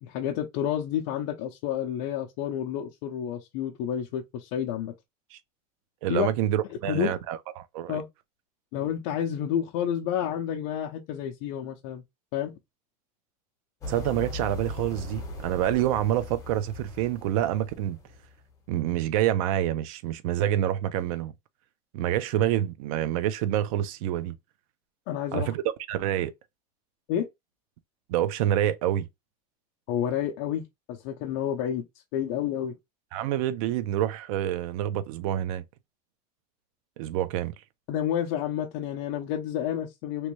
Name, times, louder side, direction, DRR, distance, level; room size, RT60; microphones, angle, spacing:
voice 1, 0.0-4.9 6.1-6.3 6.7-7.2 7.9-8.1 8.7-12.0 12.3-12.5 25.1-25.5 27.1-27.3 29.9-31.8 32.1-32.8 37.9-40.3, left 9 dB, 50° left, 0.5 m, -30 dB
voice 2, 6.0-8.0 13.9-18.0 18.7-21.3 21.9-24.4 25.3-25.6 25.9-26.3 28.1-29.1 33.1-35.6 37.0-37.5, right 12 dB, 70° right, 0.5 m, -27 dB
sound 1, 13.8-18.5, left 1 dB, 15° left, 0.9 m, -39 dB
3.0 x 2.6 x 3.0 m
cardioid pair, 175°, 19 cm